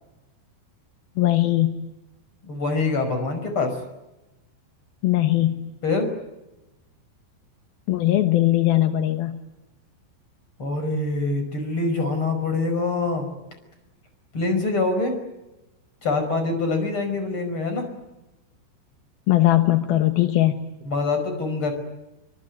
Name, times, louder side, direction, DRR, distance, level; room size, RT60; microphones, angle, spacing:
voice 1, 1.2-1.9 5.0-5.7 7.9-9.4 19.3-20.7, left 14 dB, 70° left, 7 dB, 2.3 m, -20 dB
voice 2, 2.4-3.7 5.8-6.1 10.6-13.3 14.3-15.2 16.0-17.9 20.9-21.7, left 3 dB, 25° left, 7 dB, 5.7 m, -24 dB
25.0 x 24.5 x 9.4 m, 1.0 s
omnidirectional pair, 5.9 m